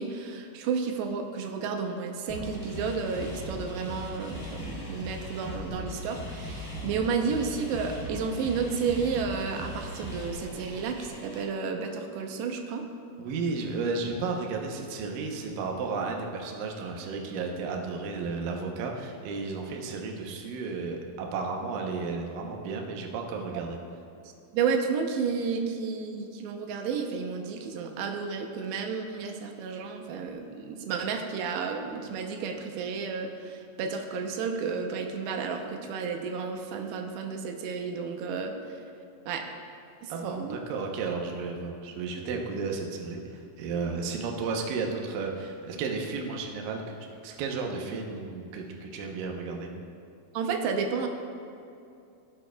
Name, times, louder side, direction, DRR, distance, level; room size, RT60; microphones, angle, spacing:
voice 1, 0.0-12.8 24.5-38.8 39.3-39.5 40.0-40.6 50.3-51.1, right 5 dB, 90° right, 4 dB, 2.9 m, -32 dB
sound 1, 2.3-11.4, left 1 dB, 20° left, 1.4 m, -39 dB
voice 2, 13.2-23.8 40.1-47.0 47.2-49.7, right 4 dB, 75° right, 1 dB, 2.2 m, -33 dB
17.0 x 7.4 x 2.3 m, 2.6 s
omnidirectional pair, 4.7 m